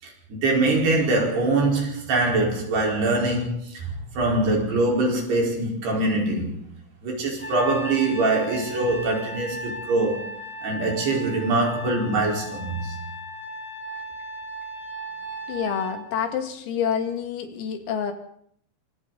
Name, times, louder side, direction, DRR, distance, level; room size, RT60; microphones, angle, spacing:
voice 1, 0.0-6.6 7.0-10.4 10.6-13.0, right 2 dB, 55° right, 6.7 m, -23 dB
Trumpet, 7.4-16.0, equal, ahead, 2.8 m, -36 dB
voice 2, 15.5-18.1, left 8 dB, 90° left, 5.2 m, -27 dB
27.5 x 25.5 x 4.2 m
omnidirectional pair, 5.9 m